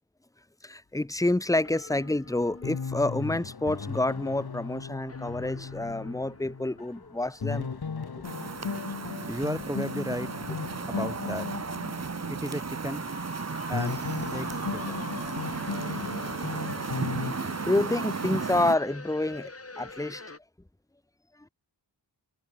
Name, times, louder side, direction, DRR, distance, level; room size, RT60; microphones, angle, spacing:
voice 1, 0.6-7.8 17.4-19.5 19.8-20.2 21.4-21.5, left 2 dB, 10° left, 1.1 m, -28 dB
sound 1, 1.6-20.4, left 3 dB, 35° left, 3.9 m, -47 dB
sound 2, 2.3-2.4 2.6-6.9 7.2-13.4 13.7-17.3, left 5 dB, 60° left, 2.4 m, -36 dB
sound 3, 8.2-18.8, right 5 dB, 40° right, 1.0 m, -35 dB
voice 2, 9.3-10.3 10.9-11.5 12.3-13.1 13.7-14.0 14.3-15.0, equal, 10° right, 1.4 m, -34 dB
wide cardioid pair, 90°, 42 cm